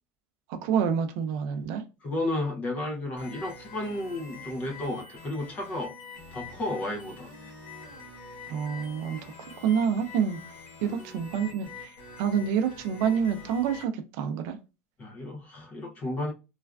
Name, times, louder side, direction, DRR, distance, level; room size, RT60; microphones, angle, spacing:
voice 1, 0.5-1.8 8.5-9.3 9.6-10.4 10.8-14.6, right 7 dB, 55° right, 0.4 m, -28 dB
voice 2, 2.0-5.9 6.3-7.3 10.8-11.0 15.0-16.3, left 1 dB, 25° left, 0.5 m, -33 dB
sound 1, 3.2-13.8, left 4 dB, 70° left, 1.2 m, -45 dB
3.2 x 2.4 x 2.3 m
cardioid pair, 170°, 6 cm